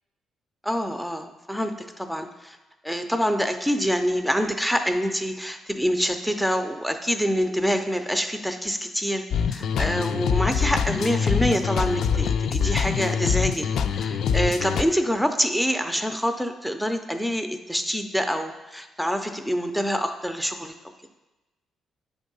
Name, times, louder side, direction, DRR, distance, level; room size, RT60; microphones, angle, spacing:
voice 1, 0.6-2.6 2.8-13.7 13.9-20.7, equal, ahead, 7 dB, 0.5 m, -26 dB
sound 1, 9.3-14.8, left 7 dB, 70° left, 0.4 m, -24 dB
8.5 x 3.6 x 5.4 m, 1.1 s
cardioid pair, 90°, 0 cm